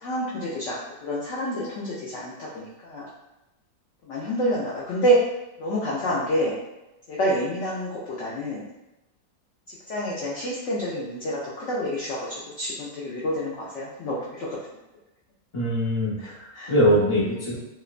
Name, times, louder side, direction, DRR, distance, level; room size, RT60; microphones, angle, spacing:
voice 1, 0.0-3.1 4.1-5.2 5.6-6.5 7.1-8.6 9.7-14.6 16.2-16.7, equal, 75° left, -6 dB, 0.6 m, -28 dB
voice 2, 15.5-17.6, equal, 35° left, -9 dB, 0.4 m, -22 dB
2.8 x 2.1 x 2.4 m, 0.95 s
omnidirectional pair, 1.8 m